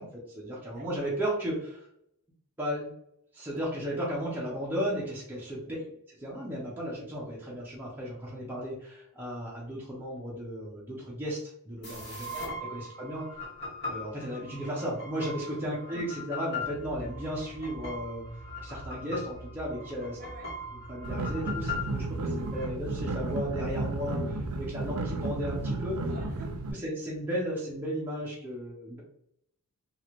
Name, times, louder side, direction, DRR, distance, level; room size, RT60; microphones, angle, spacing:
voice 1, 0.0-1.9 2.6-2.9 3.3-5.6 6.2-12.4 12.7-13.5 13.9-20.2 20.9-26.0 26.8-29.0, equal, 10° right, -6 dB, 0.6 m, -35 dB
voice 2, 0.7-1.1 5.6-5.9 12.2-12.5 15.7-15.8 20.1-20.5 26.1-26.7, right 2 dB, 40° right, -1 dB, 0.9 m, -49 dB
sound 1, 11.8-22.6, left 3 dB, 50° left, 1.2 m, -40 dB
sound 2, 16.6-26.2, right 1 dB, 75° left, 0.6 m, -45 dB
sound 3, 21.0-26.7, right 2 dB, 80° right, 0.4 m, -33 dB
3.0 x 2.4 x 3.0 m, 0.73 s
head